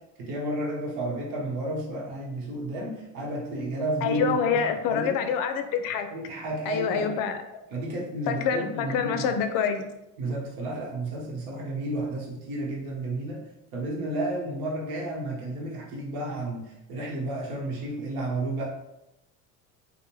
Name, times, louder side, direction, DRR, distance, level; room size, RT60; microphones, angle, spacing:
voice 1, 0.2-4.6 4.9-5.2 6.1-7.3 7.7-9.3 10.2-13.4 13.7-18.6, right 1 dB, 75° right, -3 dB, 1.0 m, -32 dB
voice 2, 4.0-6.1 6.7-7.4 8.3-9.9, left 7 dB, 60° left, 7 dB, 0.5 m, -26 dB
2.7 x 2.1 x 2.9 m, 0.91 s
cardioid pair, 120°, 37 cm